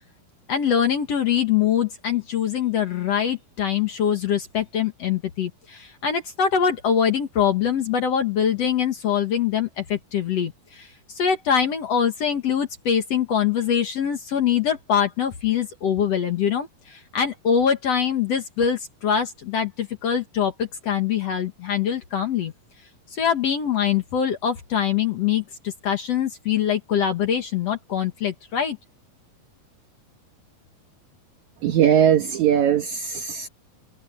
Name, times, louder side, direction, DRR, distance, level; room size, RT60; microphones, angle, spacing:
voice 1, 0.5-10.9 11.1-22.5 23.1-28.8, left 8 dB, 55° left, 2.1 m, -23 dB
voice 2, 31.6-33.5, right 9 dB, 60° right, 2.4 m, -19 dB
omnidirectional pair, 4.4 m